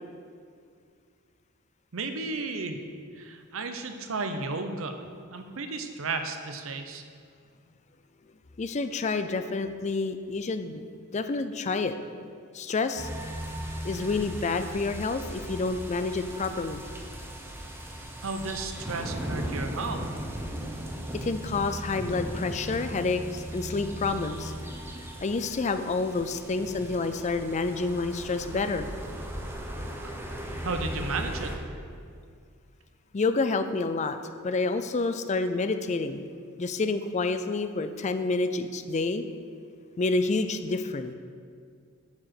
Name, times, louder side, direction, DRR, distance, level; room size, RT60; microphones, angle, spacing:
voice 1, 1.9-2.8 3.2-4.9 5.3-7.0 18.2-20.0 30.6-31.5, right 3 dB, 70° right, 6 dB, 0.7 m, -33 dB
voice 2, 8.6-10.8 11.1-12.0 12.5-13.1 13.8-16.8 21.2-24.5 25.2-28.9 33.1-34.2 34.4-36.2 36.6-39.3 40.0-41.1, left 3 dB, 35° left, 9 dB, 0.4 m, -28 dB
sound 1, 13.0-31.6, right 1 dB, 10° right, 0.9 m, -37 dB
9.6 x 4.9 x 5.9 m, 2.2 s
head